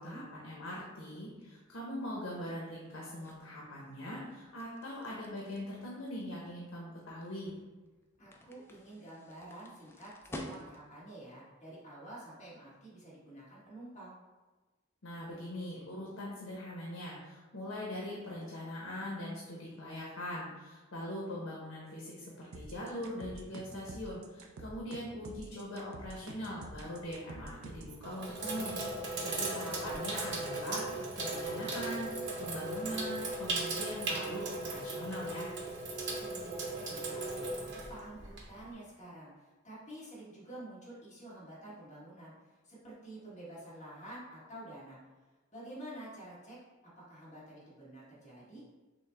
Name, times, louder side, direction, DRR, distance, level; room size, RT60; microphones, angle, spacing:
voice 1, 0.0-7.6 15.0-32.1 32.4-35.5, left 1 dB, 80° left, -4 dB, 0.9 m, -42 dB
sound 1, 0.7-11.1, left 1 dB, 10° left, 0.3 m, -52 dB
voice 2, 8.2-14.2 29.1-30.0 36.2-45.0 45.5-46.6 47.1-48.7, right 1 dB, 35° left, -8 dB, 1.5 m, -49 dB
sound 2, 22.5-28.0, right 2 dB, 85° right, 0.5 m, -48 dB
Sink (filling or washing), 26.7-27.1 27.8-38.7, right 2 dB, 60° right, 0.9 m, -37 dB
6.2 x 2.1 x 3.3 m, 1.2 s
head